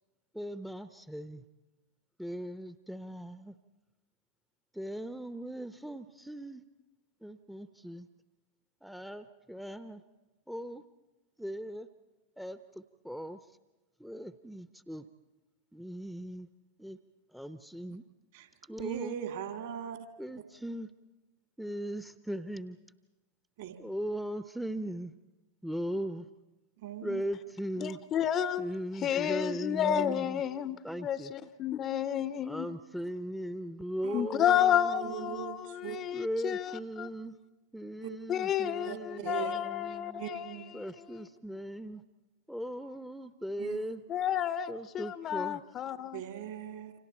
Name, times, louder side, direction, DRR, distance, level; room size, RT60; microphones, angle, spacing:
voice 1, 0.3-1.4 2.2-3.5 4.7-6.6 7.2-8.1 8.8-10.0 10.5-10.8 11.4-11.9 12.4-13.4 14.0-15.1 15.7-16.5 16.8-17.0 17.3-18.0 18.7-19.2 20.2-20.9 21.6-22.8 23.8-25.1 25.6-26.3 27.0-28.0 28.6-30.4 30.8-31.3 32.3-35.5 36.1-37.4 37.7-40.2 40.7-42.0 42.5-44.0 44.7-45.6, equal, ahead, 0.8 m, -39 dB
voice 2, 18.8-20.0 23.6-23.8 26.8-27.2 34.0-34.2 35.0-36.0 38.0-38.1 38.8-39.5 40.2-40.7 43.6-43.9 46.1-46.9, right 9 dB, 55° right, 2.4 m, -39 dB
voice 3, 27.8-28.6 29.0-32.7 34.1-37.1 38.3-40.5 44.1-46.2, left 10 dB, 30° left, 0.8 m, -31 dB
29.5 x 26.5 x 4.5 m
figure-of-eight pair, 90°, 0 cm